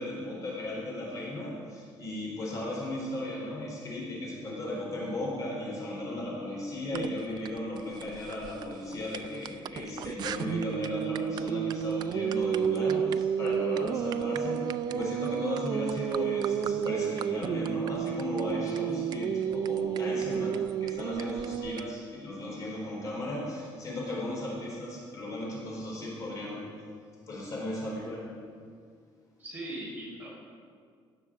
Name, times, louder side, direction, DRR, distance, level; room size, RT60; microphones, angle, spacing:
voice 1, 0.0-26.7 27.3-28.4, left 1 dB, 40° left, -3 dB, 4.1 m, -36 dB
sound 1, 6.9-21.8, right 8 dB, 50° right, 0.4 m, -31 dB
voice 2, 29.4-30.3, right 1 dB, 20° right, -5 dB, 4.6 m, -39 dB
17.5 x 7.3 x 7.5 m, 2.1 s
cardioid pair, 165°, 9 cm